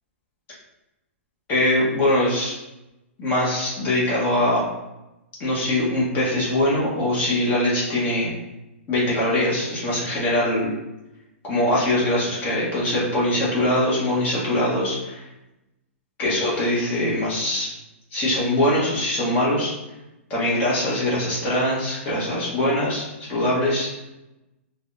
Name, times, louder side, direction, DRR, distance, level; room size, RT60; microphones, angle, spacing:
voice 1, 1.5-2.5 3.2-4.6 5.4-8.3 8.9-10.7 11.4-15.3 16.2-17.7 18.1-19.7 20.3-23.9, left 1 dB, 25° left, -6 dB, 1.1 m, -22 dB
3.3 x 2.2 x 2.5 m, 0.95 s
hypercardioid pair, 150°, 7 cm